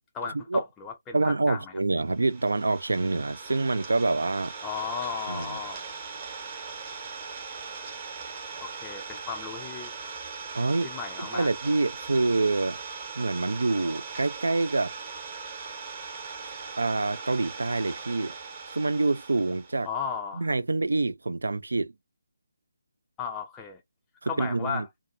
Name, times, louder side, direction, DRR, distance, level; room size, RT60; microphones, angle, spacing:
voice 1, 0.1-1.8 4.6-5.9 8.6-9.9 10.8-11.5 19.8-20.5 23.2-23.8 24.3-24.9, left 6 dB, 10° left, 0.4 m, -35 dB
voice 2, 1.1-4.5 5.3-5.5 10.5-10.9 11.2-12.8 13.2-14.9 16.8-18.3 18.7-19.9 20.4-21.9 24.2-24.8, right 3 dB, 70° right, 0.4 m, -26 dB
Idling, 2.1-19.8, right 5 dB, 25° right, 0.9 m, -40 dB
2.5 x 2.3 x 2.5 m
figure-of-eight pair, 150°, 0 cm